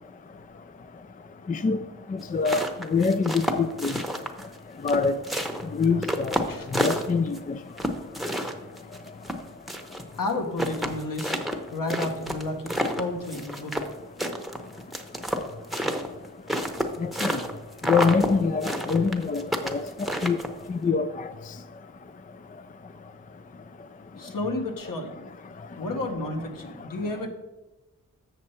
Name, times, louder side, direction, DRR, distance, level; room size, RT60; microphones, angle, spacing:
voice 1, 1.5-1.8 2.3-2.6 2.9-3.9 4.8-5.1 5.7-6.4 6.7-7.4 17.0-17.4 17.9-19.8 20.2-20.4 20.7-21.3, left 5 dB, 25° left, 0.3 m, -24 dB
sound 1, 2.2-4.6 4.9-7.4 7.8-10.0 10.3-10.4 10.6-13.9 14.2-17.5 17.8-18.3 18.6-20.7, equal, ahead, 0.8 m, -29 dB
voice 2, 10.2-11.4 11.7-13.7 24.2-25.2 25.8-27.3, left 2 dB, 65° left, 1.2 m, -31 dB
7.3 x 6.5 x 4.4 m
wide cardioid pair, 80°, 35 cm